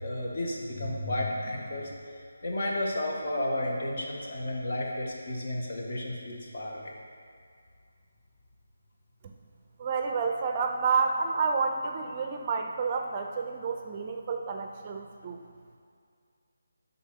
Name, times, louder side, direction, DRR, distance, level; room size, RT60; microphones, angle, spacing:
voice 1, 0.0-1.9 2.4-6.9, left 1 dB, 50° left, -2 dB, 1.6 m, -32 dB
voice 2, 9.8-15.4, right 5 dB, 25° right, 4 dB, 0.5 m, -29 dB
11.0 x 4.1 x 5.4 m, 2.3 s
figure-of-eight pair, 155°, 0 cm